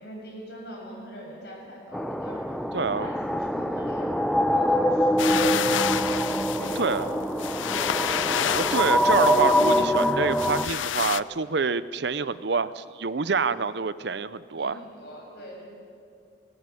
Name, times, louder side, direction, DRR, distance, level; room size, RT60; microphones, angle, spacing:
voice 1, 0.0-2.6 2.9-6.0 6.5-8.6 14.6-15.7, equal, 60° left, -2 dB, 7.5 m, -42 dB
sound 1, 1.9-10.7, equal, ahead, 0.6 m, -24 dB
voice 2, 2.7-3.1 6.8-7.1 8.6-14.8, right 4 dB, 65° right, 16 dB, 0.6 m, -26 dB
sound 2, 5.2-11.2, left 9 dB, 90° left, 0.5 m, -29 dB
20.0 x 18.0 x 9.7 m, 2.3 s
head